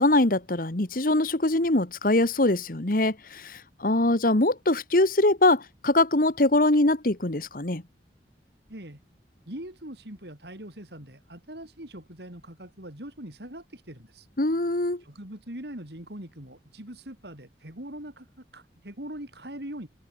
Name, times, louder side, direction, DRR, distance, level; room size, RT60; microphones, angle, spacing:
voice 1, 0.0-7.8 14.4-15.0, left 2 dB, 50° left, 1.6 m, -23 dB
voice 2, 8.7-9.0 9.5-14.3 15.0-19.9, right 1 dB, 70° right, 5.7 m, -42 dB
open air
head